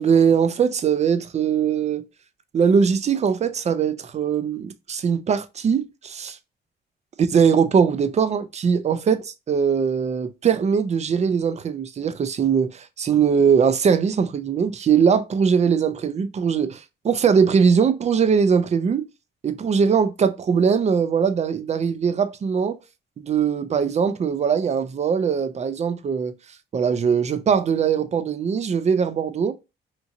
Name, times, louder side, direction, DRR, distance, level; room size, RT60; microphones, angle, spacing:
voice 1, 0.0-2.0 2.5-6.4 7.3-19.0 19.4-22.8 23.2-26.3 26.7-29.5, right 6 dB, 35° right, 0.4 m, -21 dB
2.9 x 2.6 x 2.5 m
cardioid pair, 90°, 20 cm